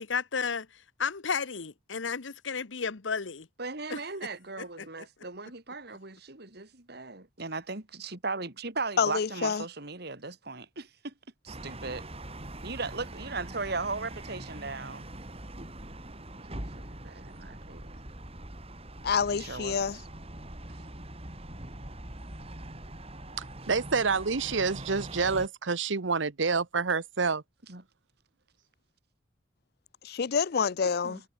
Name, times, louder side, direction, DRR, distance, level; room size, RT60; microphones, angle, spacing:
voice 1, 0.0-3.5 3.9-4.0 4.6-4.9, left 5 dB, 85° left, 1.0 m, -33 dB
voice 2, 3.6-11.1 11.4-12.1 12.6-15.1 16.5-18.0 19.3-19.9 27.7-27.8 31.0-31.2, right 3 dB, 60° right, 3.0 m, -37 dB
voice 3, 9.0-9.6 19.0-20.0 30.0-31.2, left 6 dB, 55° left, 0.5 m, -27 dB
sound 1, 11.5-25.5, right 1 dB, 30° right, 5.1 m, -43 dB
voice 4, 23.4-27.4, right 4 dB, 80° right, 1.0 m, -28 dB
head